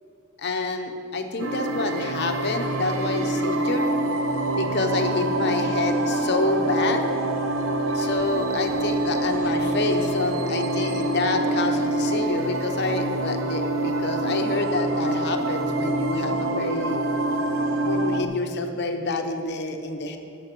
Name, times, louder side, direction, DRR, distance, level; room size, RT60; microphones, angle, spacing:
voice 1, 0.4-3.9 4.6-7.0 7.9-17.0 17.7-20.2, left 2 dB, 55° left, 4 dB, 1.0 m, -27 dB
sound 1, 1.4-18.2, right 1 dB, 70° right, 0.7 m, -26 dB
13.5 x 6.0 x 6.2 m, 2.7 s
head